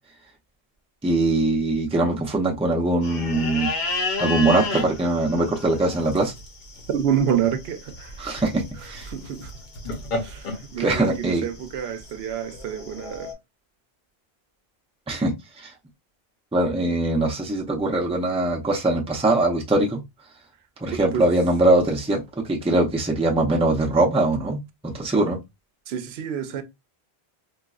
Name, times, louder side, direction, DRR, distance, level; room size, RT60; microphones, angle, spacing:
voice 1, 1.0-3.7 4.2-6.3 8.2-9.1 10.8-11.4 15.1-15.3 15.6-15.7 16.5-20.0 20.8-25.4, right 2 dB, 10° right, 0.5 m, -22 dB
sound 1, 3.0-13.3, left 3 dB, 50° left, 0.8 m, -32 dB
voice 2, 6.9-8.1 9.1-9.5 10.2-13.3 20.9-21.3 25.9-26.6, right 9 dB, 80° right, 0.8 m, -27 dB
4.0 x 2.0 x 2.3 m
omnidirectional pair, 1.1 m